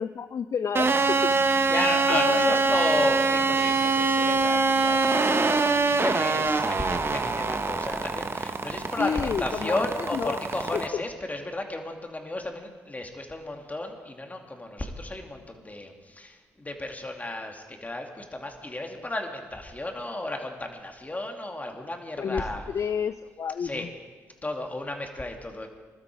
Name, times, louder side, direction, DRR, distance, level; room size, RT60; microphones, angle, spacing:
voice 1, 0.0-1.3 1.6-1.7 2.1-2.6 9.0-9.9 10.1-10.4 10.7-11.0 22.2-22.5 22.7-23.9, left 7 dB, 45° left, 13 dB, 0.4 m, -30 dB
sound 1, 0.8-10.9, right 3 dB, 35° right, 1.1 m, -24 dB
voice 2, 1.7-22.6 23.6-23.9 24.4-25.7, left 1 dB, 20° left, 3 dB, 2.4 m, -33 dB
21.0 x 12.5 x 4.6 m, 1.5 s
hypercardioid pair, 45°, 7 cm